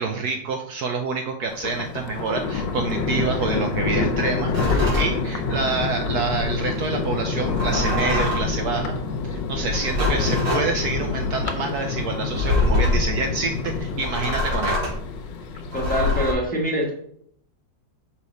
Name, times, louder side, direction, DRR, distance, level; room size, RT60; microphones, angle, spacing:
voice 1, 0.0-9.0 9.2-14.9, right 4 dB, 70° right, 4 dB, 1.0 m, -27 dB
Thunder, 1.5-16.2, left 4 dB, 75° left, 1.3 m, -27 dB
sound 1, 4.5-5.1 7.4-8.5 9.7-10.7 12.3-13.1 14.0-15.0 15.7-16.3, left 2 dB, 90° right, 3.0 m, -24 dB
voice 2, 15.7-16.9, equal, 5° left, -2 dB, 1.0 m, -24 dB
5.4 x 3.4 x 5.2 m, 0.68 s
omnidirectional pair, 2.0 m